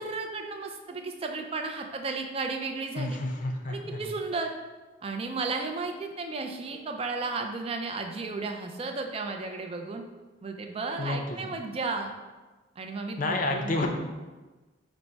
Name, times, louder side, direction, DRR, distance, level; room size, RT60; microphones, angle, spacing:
voice 1, 0.0-3.2 3.7-4.5 5.0-10.0 10.4-12.1 12.8-13.8, right 3 dB, 30° right, 4 dB, 0.4 m, -34 dB
voice 2, 3.0-4.0 11.0-11.5 13.2-13.9, left 2 dB, 45° left, 3 dB, 0.5 m, -30 dB
5.1 x 2.1 x 4.4 m, 1.2 s
head